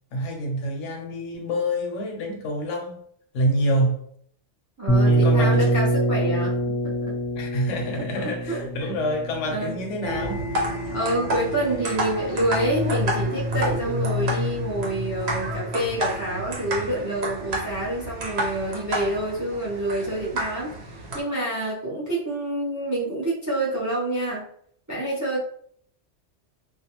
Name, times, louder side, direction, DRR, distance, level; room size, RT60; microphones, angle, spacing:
voice 1, 0.1-3.0 3.3-4.0 5.1-5.7 7.4-10.4, equal, 80° left, 1.0 m, -27 dB
voice 2, 4.8-7.1 8.2-8.9 9.5-9.8 10.9-20.7 21.1-24.5 24.9-25.4, right 1 dB, 25° right, 0.4 m, -27 dB
sound 1, 4.9-10.6, right 2 dB, 35° left, 0.6 m, -24 dB
sound 2, 10.0-21.2, equal, 65° right, 0.9 m, -29 dB
2.5 x 2.2 x 2.8 m
omnidirectional pair, 1.2 m